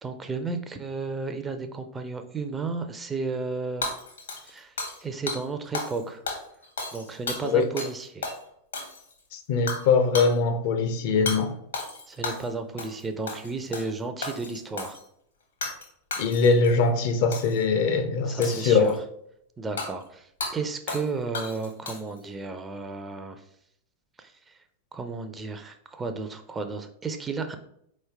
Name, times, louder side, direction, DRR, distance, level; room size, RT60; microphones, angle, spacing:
voice 1, 0.0-3.9 4.4-4.7 5.0-6.2 6.9-8.3 12.1-15.0 18.3-18.9 19.6-23.4 24.2-24.6 24.9-27.6, right 4 dB, 15° right, 0.4 m, -33 dB
Hammer / Shatter, 3.8-5.0 5.3-5.4 5.7-6.0 6.3-8.0 8.2-8.4 8.7-9.2 9.7-9.9 10.1-10.3 11.3-11.4 11.7-12.5 12.8-13.0 13.3-13.9 14.2-15.0 15.6-16.7 17.3-17.6 18.4-19.0 19.8-19.9 20.4-20.5 20.9-21.1 21.3-22.2, left 3 dB, 70° left, 1.1 m, -33 dB
voice 2, 9.3-11.6 16.2-19.0, left 4 dB, 50° left, 0.5 m, -22 dB
4.4 x 3.1 x 3.3 m
figure-of-eight pair, 90°, 0 cm